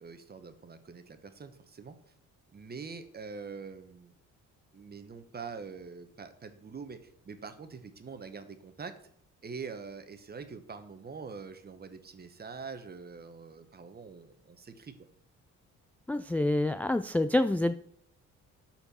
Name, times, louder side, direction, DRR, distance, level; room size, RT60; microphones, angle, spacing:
voice 1, 0.0-2.0 2.5-4.1 4.7-8.9 9.4-14.9, right 5 dB, 30° right, 9 dB, 1.1 m, -44 dB
voice 2, 16.1-17.7, left 1 dB, 5° left, 11 dB, 0.3 m, -27 dB
13.0 x 4.5 x 4.3 m, 0.67 s
cardioid pair, 90°, 30 cm